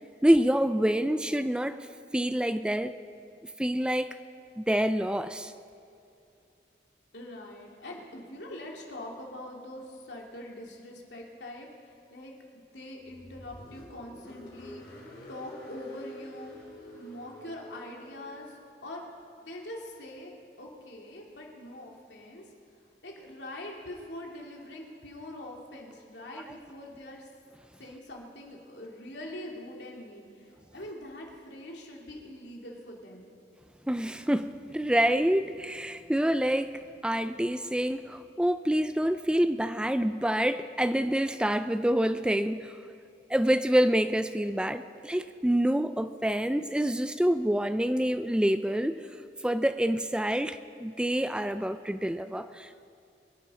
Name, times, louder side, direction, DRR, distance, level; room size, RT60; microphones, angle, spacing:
voice 1, 0.2-1.9 2.1-3.0 3.6-4.1 4.6-5.5 33.9-42.7 43.3-49.0 49.4-52.9, equal, 5° right, 11 dB, 0.4 m, -27 dB
voice 2, 7.1-19.0 19.4-22.4 23.0-27.3 27.8-33.3, left 1 dB, 85° left, -1 dB, 2.8 m, -44 dB
Car, 13.0-18.5, left 1 dB, 65° left, 4.8 m, -47 dB
24.0 x 11.0 x 5.0 m, 2.6 s
head